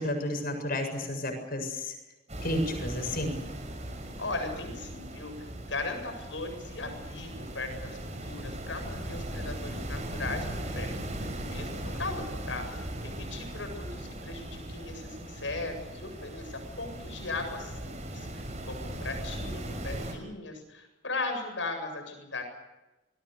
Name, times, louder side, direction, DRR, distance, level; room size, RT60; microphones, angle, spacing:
voice 1, 0.0-1.9 2.4-3.4, left 1 dB, 50° left, 5 dB, 7.4 m, -31 dB
sound 1, 2.3-20.1, right 1 dB, 40° right, 6.1 m, -38 dB
voice 2, 4.2-11.0 11.5-22.4, left 3 dB, 80° left, 6 dB, 7.9 m, -38 dB
27.0 x 21.0 x 7.0 m, 1.0 s
head